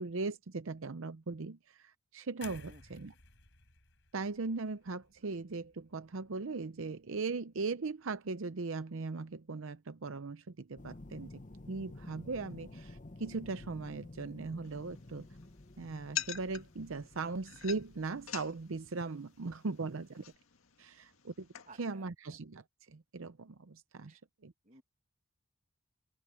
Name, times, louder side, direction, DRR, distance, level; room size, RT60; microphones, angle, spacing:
voice 1, 0.0-3.1 4.1-11.4 11.7-15.3 15.8-20.2 20.8-21.5 21.8-24.5, right 3 dB, 65° right, 0.6 m, -39 dB
sound 1, 2.4-6.4 6.8-7.0, left 5 dB, 55° left, 7.3 m, -56 dB
sound 2, 10.8-18.9 20.3-20.4, left 2 dB, 35° left, 1.0 m, -52 dB
sound 3, 14.6-21.9, left 10 dB, 70° left, 1.9 m, -46 dB
voice 2, 21.7-22.1 24.1-24.2 24.6-24.8, right 3 dB, 35° right, 1.6 m, -56 dB
open air
head